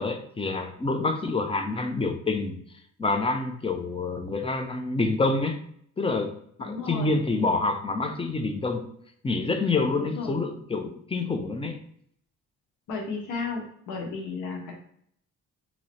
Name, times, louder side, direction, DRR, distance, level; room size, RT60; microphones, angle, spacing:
voice 1, 0.0-2.6 3.0-5.6 6.0-6.3 6.6-8.9 9.2-11.8, left 3 dB, 20° left, 6 dB, 0.6 m, -27 dB
voice 2, 6.6-7.2 9.9-10.3 12.9-14.7, left 4 dB, 90° left, 0 dB, 1.0 m, -33 dB
3.0 x 2.9 x 4.3 m, 0.66 s
cardioid pair, 90°, 30 cm